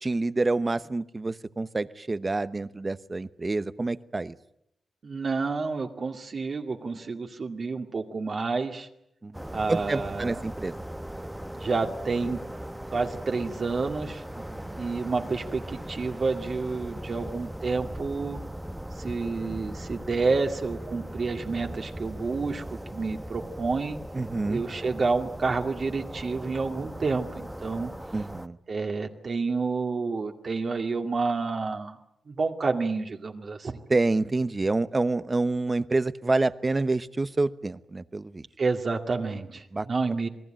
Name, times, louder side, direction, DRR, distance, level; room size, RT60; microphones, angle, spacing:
voice 1, 0.0-4.4 9.2-10.8 14.5-14.8 24.1-24.6 28.1-28.6 33.9-38.5 39.7-39.9, right 2 dB, 25° right, 14 dB, 0.9 m, -28 dB
voice 2, 5.0-8.9 9.5-10.4 11.6-12.4 12.9-14.2 14.7-18.4 19.0-24.0 24.5-27.9 28.7-32.0 32.3-33.8 38.6-40.3, right 4 dB, 50° right, 3 dB, 2.2 m, -29 dB
sound 1, 9.3-28.5, right 1 dB, 5° right, 1.0 m, -39 dB
27.5 x 20.0 x 9.0 m, 0.79 s
wide cardioid pair, 100°, 0 cm